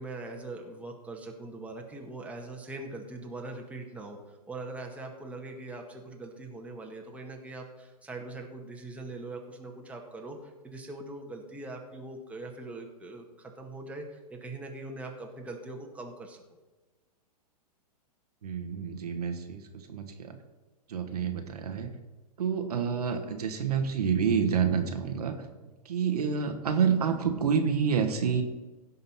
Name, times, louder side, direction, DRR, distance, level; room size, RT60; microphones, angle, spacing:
voice 1, 0.0-16.4, right 2 dB, 5° right, 1 dB, 1.7 m, -42 dB
voice 2, 18.4-19.6 19.9-20.4 20.9-21.9 22.4-25.3 25.8-28.4, right 6 dB, 70° right, 6 dB, 1.5 m, -28 dB
16.0 x 5.7 x 5.7 m, 1.2 s
hypercardioid pair, 110°, 21 cm